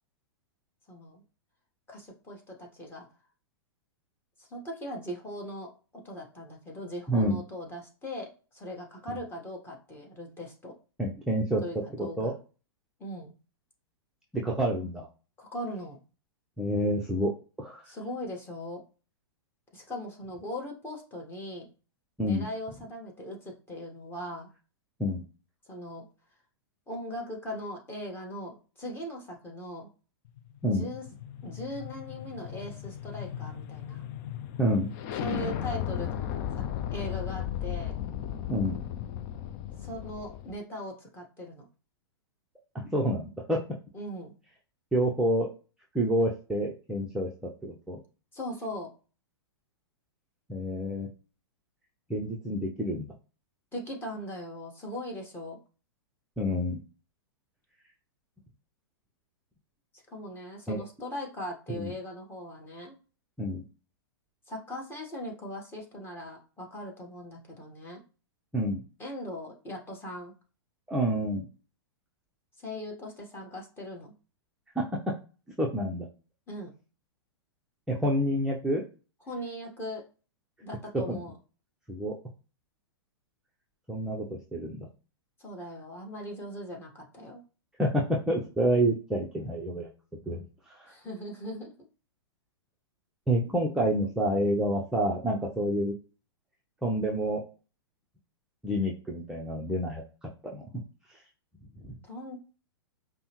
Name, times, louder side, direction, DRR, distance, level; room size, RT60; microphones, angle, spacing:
voice 1, 0.9-1.2 1.9-3.1 4.5-10.7 11.6-12.3 13.0-13.3 15.4-16.0 17.9-18.8 19.7-21.7 22.2-24.5 25.7-26.1 26.9-29.9 30.7-31.0 31.4-34.0 35.2-36.6 36.9-37.9 39.8-41.7 43.9-44.3 48.3-48.9 53.7-55.6 59.9-62.9 64.5-68.0 69.0-70.3 72.6-74.1 76.5-76.7 79.3-80.0 80.6-81.3 85.4-87.4 90.9-91.9 102.0-102.4, equal, 15° left, 0 dB, 1.4 m, -39 dB
voice 2, 7.1-7.4 11.0-11.6 12.0-12.3 14.3-15.1 16.6-17.3 17.6-17.8 22.2-22.5 25.0-25.2 30.6-30.9 34.6-34.9 38.5-38.8 42.7-43.6 44.9-45.5 45.9-48.0 50.5-51.1 52.1-53.1 56.4-56.8 60.7-60.8 61.7-61.9 63.4-63.6 68.5-68.8 70.9-71.5 74.8-74.9 75.6-76.1 77.9-78.8 81.1-81.2 81.9-82.1 83.9-84.9 87.8-89.9 90.3-90.5 90.7-90.9 93.3-96.0 96.8-97.4 98.6-100.6 101.8-101.9, equal, 5° right, -3 dB, 0.7 m, -28 dB
sound 1, 30.4-40.6, left 10 dB, 40° left, 0.5 m, -36 dB
5.2 x 2.1 x 3.0 m, 0.35 s
hypercardioid pair, 120°, 14 cm